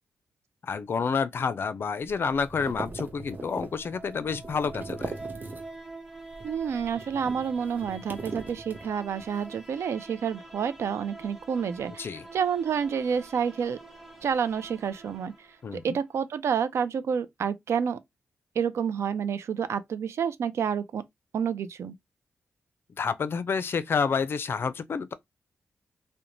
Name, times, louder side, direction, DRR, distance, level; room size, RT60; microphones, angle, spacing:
voice 1, 0.6-5.2 12.0-12.3 15.6-16.0 23.0-25.1, left 5 dB, 55° left, 0.4 m, -29 dB
sound 1, 2.0-5.9 6.2-9.3, right 3 dB, 40° right, 0.7 m, -40 dB
sound 2, 3.2-16.0, right 3 dB, 5° right, 0.8 m, -46 dB
voice 2, 6.4-13.8 14.2-15.3 15.7-18.0 18.6-21.0 21.3-21.9, right 7 dB, 75° right, 0.4 m, -29 dB
2.5 x 2.1 x 2.9 m
cardioid pair, 75°, 5 cm